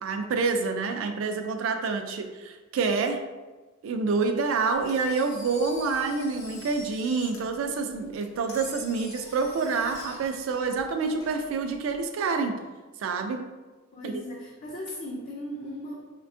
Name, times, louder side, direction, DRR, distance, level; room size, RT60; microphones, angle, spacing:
voice 1, 0.0-3.2 3.8-12.6 13.0-13.4 14.0-14.1, right 4 dB, 80° right, 6 dB, 0.3 m, -27 dB
Engine, 4.7-12.1, left 2 dB, 85° left, 0.8 m, -46 dB
voice 2, 13.9-16.0, equal, 35° left, -4 dB, 0.3 m, -37 dB
3.4 x 2.2 x 2.5 m, 1.2 s
head